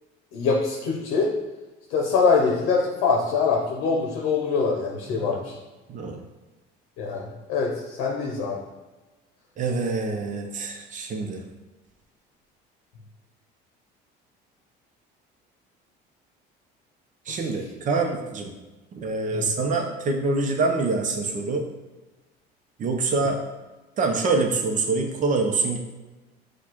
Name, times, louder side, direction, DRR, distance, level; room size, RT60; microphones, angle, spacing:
voice 1, 0.3-1.3 1.9-5.5 7.0-8.6 17.3-17.4 19.3-19.5, left 4 dB, 80° left, -1 dB, 0.7 m, -24 dB
voice 2, 5.9-6.2 9.6-11.4 17.3-18.5 18.9-21.6 22.8-23.4 24.0-25.8, right 3 dB, 40° right, 3 dB, 0.7 m, -25 dB
6.4 x 2.4 x 3.0 m, 1.2 s
cardioid pair, 115°, 20 cm